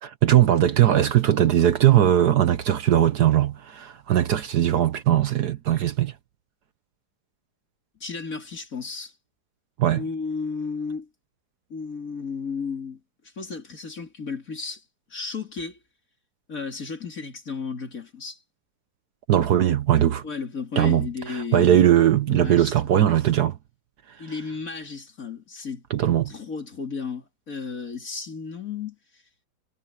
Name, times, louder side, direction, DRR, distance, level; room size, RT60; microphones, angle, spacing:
voice 1, 0.0-6.1 9.8-10.0 19.3-20.2 20.8-23.6 25.9-26.3, right 11 dB, 65° right, 1.4 m, -20 dB
voice 2, 8.0-9.1 9.9-11.1 11.7-13.0 13.4-14.8 15.1-15.8 16.5-18.4 20.2-22.0 22.3-22.7 24.2-25.8 26.3-29.0, left 5 dB, 45° left, 3.4 m, -33 dB
omnidirectional pair, 2.0 m